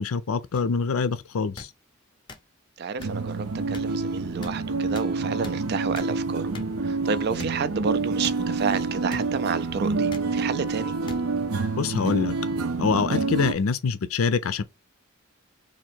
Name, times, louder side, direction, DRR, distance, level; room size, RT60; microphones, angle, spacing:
voice 1, 0.0-1.7 11.8-12.4 12.8-14.6, left 5 dB, 75° left, 0.5 m, -25 dB
sound 1, 0.5-0.6 1.6-1.7 2.3-2.4 3.0-3.1 3.7-3.8 4.4-4.5 5.0-5.1 5.4-5.6 6.0-6.1 6.5-6.7 7.4-7.5 8.2-8.4 9.1-9.2 10.1-10.3 11.1-11.2 12.0-12.2, left 2 dB, 20° left, 0.5 m, -39 dB
voice 2, 2.8-6.5 6.8-10.9, right 5 dB, 50° right, 0.4 m, -30 dB
sound 2, 3.0-13.5, right 3 dB, 85° right, 0.6 m, -28 dB
2.9 x 2.6 x 4.4 m
head